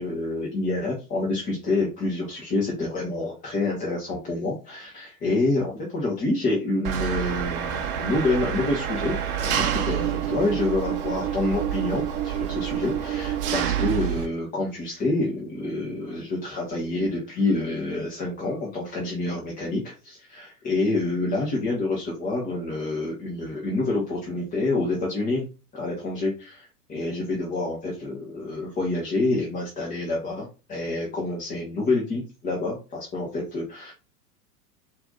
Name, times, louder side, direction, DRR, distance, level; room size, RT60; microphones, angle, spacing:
voice 1, 0.0-25.4 25.7-33.9, left 2 dB, 15° left, -3 dB, 1.0 m, -27 dB
Engine, 6.8-14.3, right 9 dB, 40° right, 0.7 m, -27 dB
4.3 x 2.7 x 3.9 m, 0.32 s
figure-of-eight pair, 95°, 46 cm